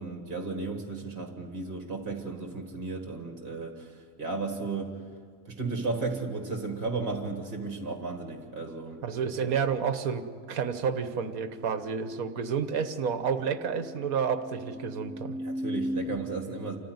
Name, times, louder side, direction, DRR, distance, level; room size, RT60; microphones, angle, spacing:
voice 1, 0.0-5.0 5.5-9.0 15.4-16.8, right 3 dB, 35° right, 4 dB, 1.8 m, -34 dB
voice 2, 9.0-15.4, right 6 dB, 65° right, 9 dB, 1.5 m, -30 dB
sound 1, 11.4-16.0, equal, 55° left, 4.3 m, -40 dB
27.5 x 14.5 x 9.5 m, 2.2 s
omnidirectional pair, 1.7 m